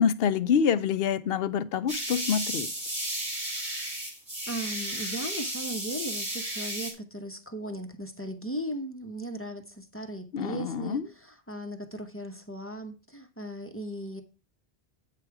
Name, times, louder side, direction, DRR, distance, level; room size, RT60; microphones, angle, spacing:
voice 1, 0.0-2.7 10.3-11.1, left 7 dB, 70° left, 0.8 m, -26 dB
sound 1, 1.9-6.9, right 1 dB, 60° right, 3.1 m, -33 dB
voice 2, 4.5-14.2, right 1 dB, 15° left, 0.8 m, -37 dB
8.5 x 5.0 x 4.6 m
omnidirectional pair, 1.1 m